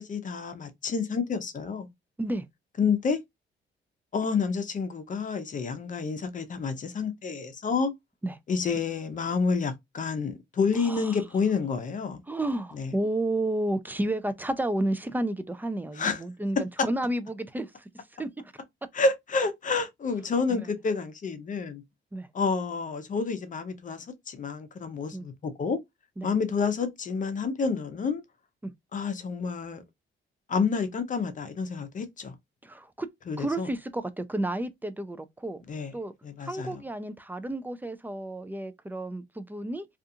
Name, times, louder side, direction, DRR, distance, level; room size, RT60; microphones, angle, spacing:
voice 1, 0.0-1.9 2.8-3.2 4.1-7.9 8.5-12.2 12.7-12.9 16.0-16.2 18.9-21.8 22.3-25.8 26.2-28.2 28.9-29.8 30.5-32.3 33.3-33.7 35.7-35.9 36.2-36.7, left 5 dB, 40° left, 0.6 m, -29 dB
voice 2, 10.8-11.2 12.3-18.6 20.5-20.7 22.1-22.3 25.1-25.2 26.2-26.3 28.6-28.7 32.6-33.1 33.4-35.6 35.9-36.1 36.5-39.9, right 1 dB, 10° right, 0.4 m, -31 dB
2.4 x 2.4 x 2.7 m
cardioid pair, 90°, 20 cm